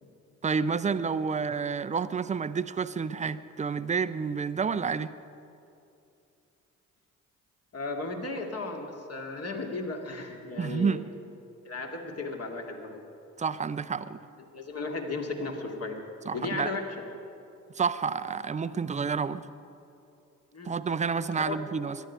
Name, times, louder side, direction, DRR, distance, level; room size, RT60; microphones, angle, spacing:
voice 1, 0.4-5.1 10.6-11.0 13.4-14.2 16.3-16.7 17.7-19.5 20.6-22.0, right 5 dB, 20° right, 14 dB, 0.6 m, -29 dB
voice 2, 7.7-11.0 11.6-13.0 14.5-16.0 16.3-16.9 20.5-20.7 21.4-21.6, left 3 dB, 35° left, 3 dB, 2.2 m, -35 dB
22.5 x 11.5 x 5.5 m, 2.7 s
figure-of-eight pair, 45°, 40 cm